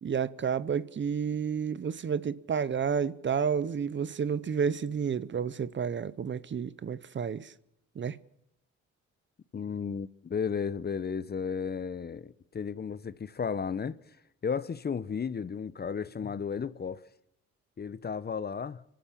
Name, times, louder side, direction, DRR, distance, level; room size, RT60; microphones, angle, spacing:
voice 1, 0.0-7.5 8.0-8.2, right 7 dB, 40° right, 0.8 m, -30 dB
voice 2, 9.5-14.0 14.4-17.1 17.8-18.8, left 6 dB, 35° left, 0.9 m, -34 dB
25.5 x 12.5 x 8.7 m
cardioid pair, 90°, 30 cm